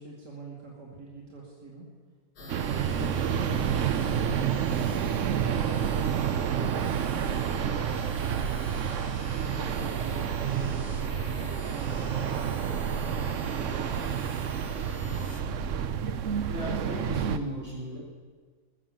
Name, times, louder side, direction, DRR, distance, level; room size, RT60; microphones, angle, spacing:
voice 1, 0.0-1.9 2.4-5.1 5.6-7.4 8.2-8.9 9.4-13.9, right 3 dB, 80° right, -4 dB, 3.1 m, -44 dB
sound 1, 2.4-15.4, left 2 dB, 80° left, 2.4 m, -44 dB
sound 2, 2.5-17.4, right 8 dB, 60° right, 0.8 m, -29 dB
voice 2, 16.4-18.0, right 1 dB, 40° right, -5 dB, 5.9 m, -35 dB
20.5 x 7.4 x 7.7 m, 1.5 s
omnidirectional pair, 1.7 m